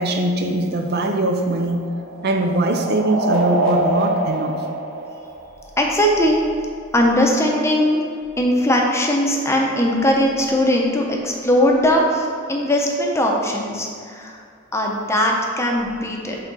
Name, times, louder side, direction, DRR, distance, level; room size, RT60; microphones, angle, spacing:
voice 1, 0.0-1.8 2.2-4.6, right 1 dB, 55° right, 4 dB, 0.5 m, -21 dB
sound 1, 1.1-5.9, right 2 dB, 75° right, 1.0 m, -25 dB
voice 2, 5.8-6.4 6.9-8.0 8.4-14.4 14.7-16.4, left 1 dB, 15° left, 0 dB, 0.7 m, -19 dB
8.0 x 3.6 x 4.1 m, 2.3 s
head